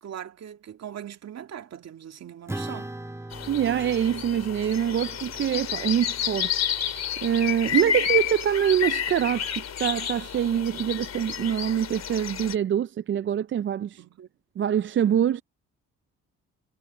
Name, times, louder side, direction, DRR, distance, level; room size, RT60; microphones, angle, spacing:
voice 1, 0.0-2.9 14.0-14.3, right 9 dB, 60° right, 2.3 m, -40 dB
Acoustic guitar / Strum, 2.5-7.3, right 1 dB, 10° right, 1.8 m, -41 dB
sound 1, 3.3-12.5, left 9 dB, 60° left, 3.3 m, -30 dB
voice 2, 3.5-6.5 7.2-14.0 14.6-15.4, right 9 dB, 40° right, 0.4 m, -25 dB
cardioid pair, 90°, 30 cm